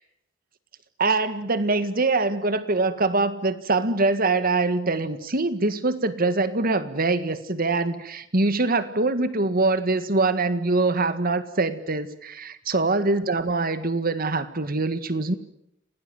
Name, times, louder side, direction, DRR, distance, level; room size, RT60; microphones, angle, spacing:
voice 1, 1.0-15.3, right 3 dB, 50° right, 12 dB, 1.8 m, -24 dB
27.5 x 18.5 x 9.5 m, 0.77 s
head